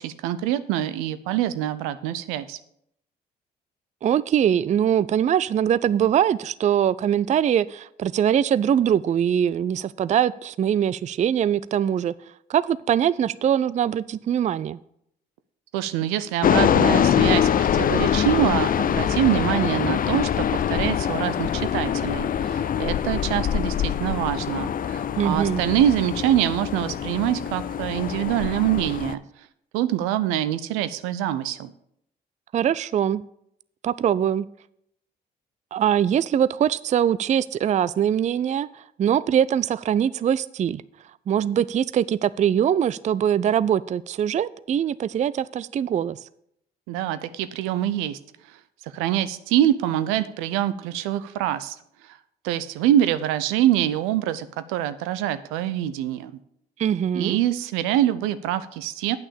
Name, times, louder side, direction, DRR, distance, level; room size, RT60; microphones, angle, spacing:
voice 1, 0.0-2.6 15.7-29.2 29.7-31.7 46.9-48.2 48.9-51.8 52.4-56.3 57.1-59.2, right 12 dB, 80° right, 14 dB, 0.6 m, -25 dB
voice 2, 4.0-12.1 12.5-14.8 25.2-25.6 32.5-33.2 33.8-34.5 35.7-38.7 39.0-40.8 41.3-46.2 56.8-57.4, right 9 dB, 35° right, 18 dB, 0.4 m, -22 dB
sound 1, 16.4-29.2, left 9 dB, 40° left, 0.5 m, -24 dB
8.9 x 6.1 x 7.0 m, 0.73 s
hypercardioid pair, 50°, 21 cm